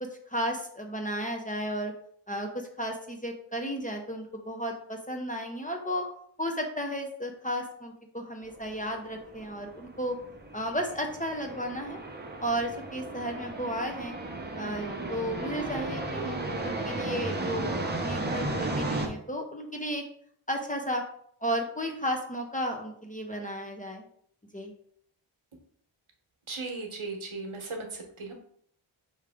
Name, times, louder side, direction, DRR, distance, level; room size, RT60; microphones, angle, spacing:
voice 1, 0.0-1.9 2.3-6.1 6.4-10.2 10.5-12.0 12.4-14.1 14.6-20.0 20.5-21.0 21.4-24.1 24.5-24.7, equal, 15° left, 2 dB, 0.7 m, -33 dB
sound 1, 8.5-19.1, right 2 dB, 20° right, 0.7 m, -35 dB
voice 2, 26.5-28.3, right 3 dB, 80° right, 2 dB, 1.0 m, -37 dB
4.8 x 3.1 x 3.4 m, 0.65 s
wide cardioid pair, 65°, 49 cm